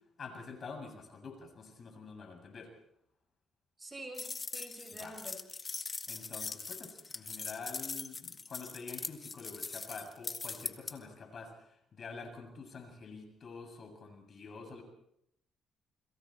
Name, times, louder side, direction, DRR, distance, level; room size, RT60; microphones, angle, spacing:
voice 1, 0.2-2.7 4.9-5.2 6.1-14.8, left 4 dB, 50° left, 3 dB, 7.4 m, -47 dB
voice 2, 3.8-5.4, right 1 dB, 25° right, 5 dB, 6.6 m, -47 dB
sound 1, 4.1-10.9, left 4 dB, 30° left, 1.9 m, -41 dB
30.0 x 22.0 x 4.5 m, 0.75 s
cardioid pair, 90°, 0 cm